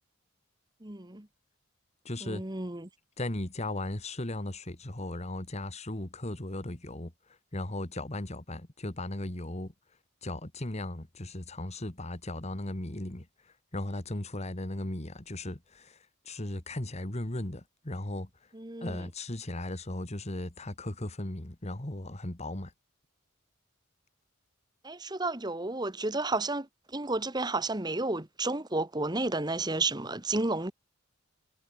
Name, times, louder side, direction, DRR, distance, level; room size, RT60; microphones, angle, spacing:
voice 1, 0.8-1.3 2.2-2.9 18.5-19.1 24.8-30.7, right 2 dB, 20° right, 1.4 m, -32 dB
voice 2, 2.1-2.4 3.2-7.1 7.5-9.7 10.2-13.3 13.7-16.0 16.3-18.3 18.8-22.7, left 1 dB, 30° left, 1.8 m, -36 dB
head